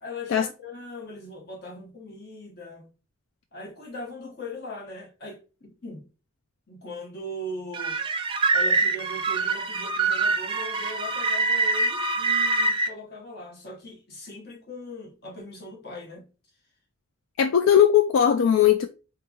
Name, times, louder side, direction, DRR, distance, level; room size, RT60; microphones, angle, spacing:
voice 1, 0.0-2.9 3.5-6.1 6.7-8.0 8.5-16.3, left 1 dB, 55° left, 1.0 m, -40 dB
sound 1, 7.7-12.9, right 3 dB, 25° right, 0.3 m, -24 dB
voice 2, 17.4-18.9, left 9 dB, 80° left, 0.3 m, -18 dB
3.5 x 2.9 x 2.3 m
head